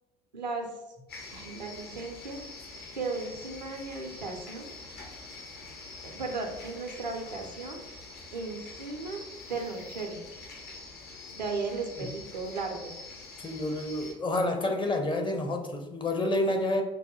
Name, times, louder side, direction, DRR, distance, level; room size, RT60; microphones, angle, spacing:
voice 1, 0.3-0.8 1.3-2.4 2.9-4.7 6.0-7.8 8.3-10.2 11.3-12.9, right 3 dB, 90° right, 3 dB, 0.5 m, -36 dB
sound 1, 1.1-14.1, left 3 dB, 50° left, 0.9 m, -45 dB
voice 2, 13.4-16.8, left 1 dB, 25° left, 4 dB, 0.6 m, -29 dB
5.2 x 2.1 x 2.8 m, 1.0 s
figure-of-eight pair, 55°, 21 cm